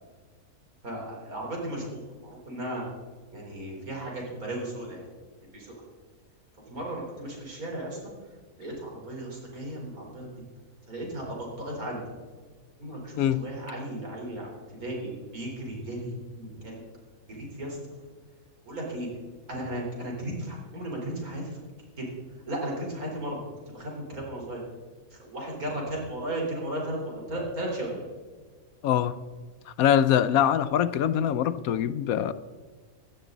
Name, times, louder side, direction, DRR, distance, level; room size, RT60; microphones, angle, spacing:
voice 1, 0.8-2.8 3.3-5.1 5.5-5.7 6.6-8.1 8.6-10.3 10.9-12.0 12.8-14.5 14.8-16.8 17.3-17.8 18.7-19.1 19.5-21.6 22.0-22.1 22.5-23.4 23.7-24.6 25.1-28.0, right 1 dB, 70° right, -2 dB, 4.5 m, -35 dB
voice 2, 13.2-13.5 28.8-29.2 29.7-32.3, left 10 dB, 75° left, 15 dB, 1.0 m, -23 dB
17.0 x 12.5 x 4.0 m, 1.5 s
omnidirectional pair, 1.6 m